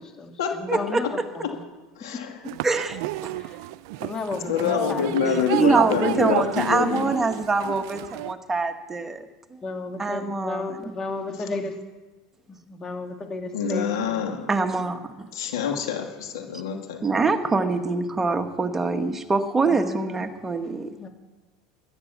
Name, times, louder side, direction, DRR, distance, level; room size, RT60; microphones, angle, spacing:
voice 1, 0.2-1.6 3.3-3.7 4.0-6.6 9.6-11.8 12.5-14.4 19.7-21.1, left 3 dB, 25° left, 4 dB, 2.3 m, -34 dB
voice 2, 0.7-1.0 2.6-3.3 5.5-9.3 10.0-10.6 14.5-15.3 17.0-20.9, right 3 dB, 15° right, 6 dB, 1.5 m, -24 dB
sound 1, 2.4-8.3, right 17 dB, 70° right, 0.5 m, -31 dB
voice 3, 4.5-7.1 13.5-14.5 15.3-17.0, left 7 dB, 85° left, 3 dB, 2.4 m, -26 dB
13.5 x 10.5 x 7.2 m, 1.2 s
supercardioid pair, 115°, 2 cm